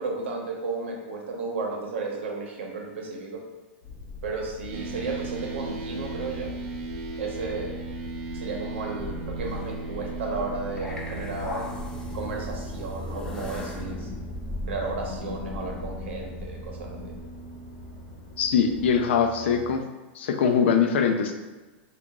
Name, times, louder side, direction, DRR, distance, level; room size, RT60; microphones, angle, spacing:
voice 1, 0.0-3.4 4.2-6.5 7.2-7.8 8.3-11.6 12.1-14.1 14.7-17.1, right 3 dB, 85° right, 0 dB, 0.8 m, -33 dB
sound 1, 3.8-19.0, left 4 dB, 55° left, 1.1 m, -43 dB
sound 2, 4.7-19.8, right 4 dB, 45° right, 0.6 m, -38 dB
sound 3, 9.0-17.2, left 2 dB, 10° left, 0.4 m, -38 dB
voice 2, 18.4-19.8 20.2-21.3, left 6 dB, 80° left, 5 dB, 0.4 m, -22 dB
3.0 x 2.4 x 3.6 m, 1.2 s
supercardioid pair, 140°, 6 cm